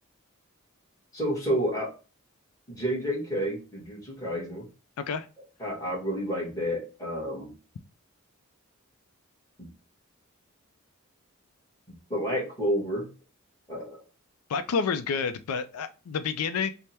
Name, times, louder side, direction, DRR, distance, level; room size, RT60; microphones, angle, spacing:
voice 1, 1.1-1.9 2.7-4.7 5.6-7.5 9.6-9.7 12.1-13.1 13.7-14.0, equal, 15° left, -4 dB, 1.3 m, -30 dB
voice 2, 5.0-5.3 14.5-16.7, left 5 dB, 85° left, 11 dB, 0.4 m, -29 dB
3.4 x 2.1 x 4.1 m, 0.33 s
head